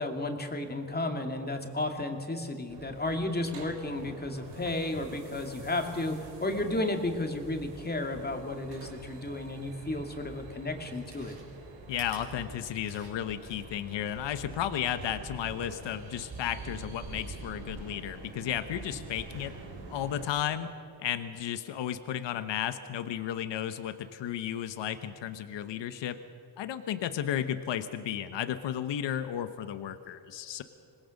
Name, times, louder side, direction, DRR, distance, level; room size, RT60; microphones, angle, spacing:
voice 1, 0.0-11.3, left 2 dB, 20° left, 4 dB, 2.4 m, -33 dB
sound 1, 2.7-20.3, right 3 dB, 80° right, 3.9 m, -46 dB
Chewing mastication, 10.9-13.4 13.8-13.9, right 4 dB, 60° right, 5.4 m, -53 dB
voice 2, 11.9-19.6 19.9-20.7 21.0-26.2 26.6-30.6, left 10 dB, 85° left, 11 dB, 1.1 m, -33 dB
26.5 x 20.0 x 6.5 m, 2.4 s
cardioid pair, 110°, 43 cm